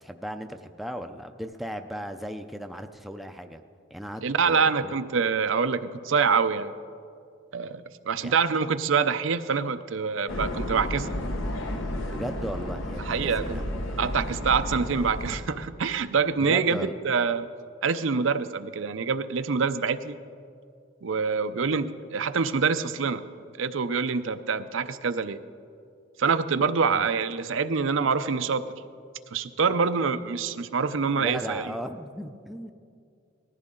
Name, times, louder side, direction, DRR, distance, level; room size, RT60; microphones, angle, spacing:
voice 1, 0.0-3.6 3.9-5.0 8.2-8.3 12.1-13.6 16.4-16.9 26.9-27.1 31.2-32.7, equal, ahead, 6 dB, 0.5 m, -36 dB
voice 2, 4.2-6.7 7.5-11.1 13.0-13.6 14.0-17.4 17.8-20.1 21.0-23.2 23.6-25.4 26.2-28.6 29.3-31.7, right 5 dB, 80° right, 11 dB, 0.6 m, -25 dB
sound 1, 10.3-15.4, left 1 dB, 80° left, 1.3 m, -32 dB
19.5 x 14.5 x 3.8 m, 2.3 s
head